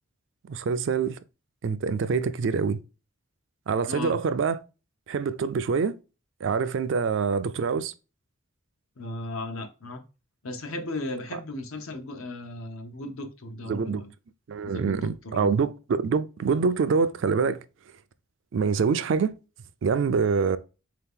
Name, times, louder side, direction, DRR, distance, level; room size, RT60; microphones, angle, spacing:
voice 1, 0.5-1.2 1.6-2.8 3.7-4.6 5.1-5.9 6.4-7.9 13.7-14.0 14.5-17.6 18.5-19.3 19.8-20.6, right 5 dB, 60° right, 0.3 m, -25 dB
voice 2, 3.9-4.2 9.0-10.0 10.4-14.1 14.7-15.5, left 1 dB, 75° left, 0.8 m, -36 dB
3.9 x 2.8 x 3.6 m
head